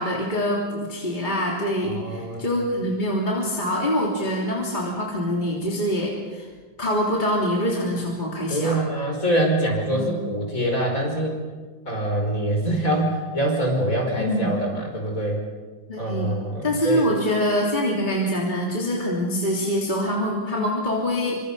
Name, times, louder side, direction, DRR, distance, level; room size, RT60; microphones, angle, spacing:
voice 1, 0.0-6.5 6.8-8.8 9.9-10.1 14.2-14.6 15.9-16.3 16.6-21.4, equal, 25° left, -3 dB, 3.5 m, -25 dB
voice 2, 1.8-2.4 8.5-11.4 11.9-15.4 16.0-17.1, right 1 dB, 45° left, 1 dB, 5.9 m, -24 dB
28.0 x 25.5 x 5.6 m, 1.4 s
omnidirectional pair, 2.0 m